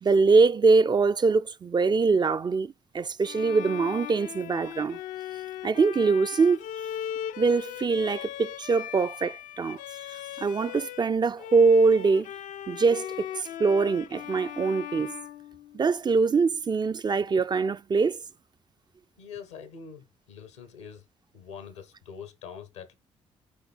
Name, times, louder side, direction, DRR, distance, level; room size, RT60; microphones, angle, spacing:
voice 1, 0.0-5.0 5.6-6.6 7.4-9.8 10.1-12.3 12.7-15.2 15.7-18.2, right 4 dB, 30° right, 0.4 m, -23 dB
Bowed string instrument, 3.2-11.1 11.4-16.2, left 11 dB, 65° left, 0.4 m, -39 dB
voice 2, 19.2-21.1 21.3-22.9, left 7 dB, 85° left, 0.9 m, -44 dB
8.3 x 3.2 x 4.1 m
hypercardioid pair, 40°, 15 cm